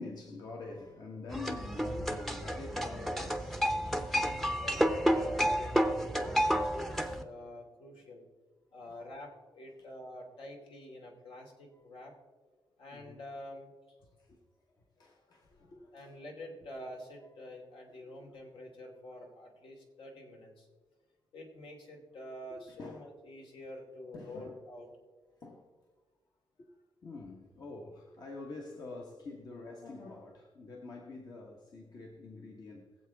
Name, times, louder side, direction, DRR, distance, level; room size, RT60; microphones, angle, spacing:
voice 1, 0.0-3.8 8.9-9.0 12.9-13.2 14.0-14.4 15.0-16.2 17.9-18.2 22.5-23.1 24.1-24.6 25.4-25.7 26.6-33.0, left 3 dB, 50° left, 0 dB, 1.4 m, -46 dB
sound 1, 1.3-7.2, equal, ahead, 0.7 m, -31 dB
voice 2, 4.6-8.3 8.7-12.1 12.8-14.0 15.9-20.7 21.3-24.9, left 1 dB, 75° left, 1 dB, 2.9 m, -47 dB
22.0 x 7.9 x 3.6 m, 1.4 s
wide cardioid pair, 145°, 9 cm